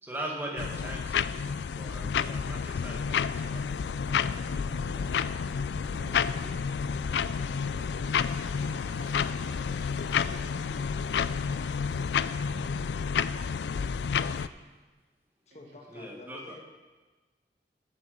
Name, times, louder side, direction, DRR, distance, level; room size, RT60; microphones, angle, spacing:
voice 1, 0.0-4.1 15.9-16.5, right 1 dB, 10° right, -1 dB, 1.7 m, -40 dB
sound 1, 0.6-14.5, left 6 dB, 75° left, 0.4 m, -30 dB
sound 2, 2.6-12.5, right 1 dB, 85° right, 1.9 m, -53 dB
voice 2, 5.9-7.5 8.6-11.7 12.5-14.4 15.5-15.6, right 1 dB, 70° right, -3 dB, 2.8 m, -55 dB
voice 3, 15.5-16.6, left 2 dB, 40° left, 2 dB, 1.5 m, -49 dB
11.5 x 7.1 x 6.8 m, 1.3 s
head